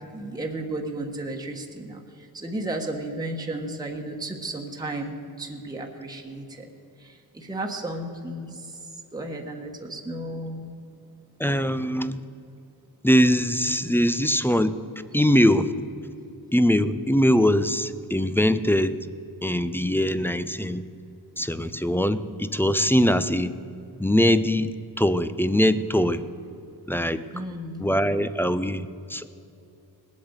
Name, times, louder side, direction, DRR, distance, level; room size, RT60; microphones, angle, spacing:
voice 1, 0.1-6.7 7.0-8.8 9.1-10.7 27.3-27.8, right 1 dB, 10° right, 1 dB, 1.2 m, -34 dB
voice 2, 11.4-12.2 13.0-14.8 15.1-15.7 16.5-19.0 19.4-20.8 21.4-23.5 24.0-26.3 26.9-27.2 27.8-29.3, equal, 5° left, 13 dB, 0.4 m, -22 dB
19.5 x 8.5 x 8.0 m, 2.8 s
wide cardioid pair, 145°, 38 cm